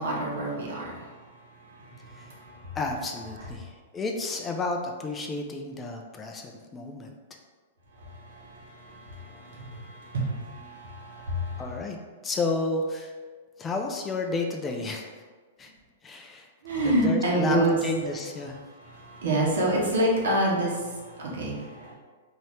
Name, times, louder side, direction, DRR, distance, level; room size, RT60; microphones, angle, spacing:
voice 1, 0.0-2.8 3.4-3.5 7.9-11.8 16.6-17.8 18.7-21.9, right 1 dB, 80° right, -3 dB, 1.2 m, -28 dB
voice 2, 2.7-7.4 11.6-12.0 12.2-13.1 13.6-15.2 15.6-15.7 16.0-16.5 16.8-18.6, left 3 dB, 15° left, 2 dB, 0.4 m, -31 dB
4.2 x 2.9 x 3.2 m, 1.4 s
hypercardioid pair, 145°, 0 cm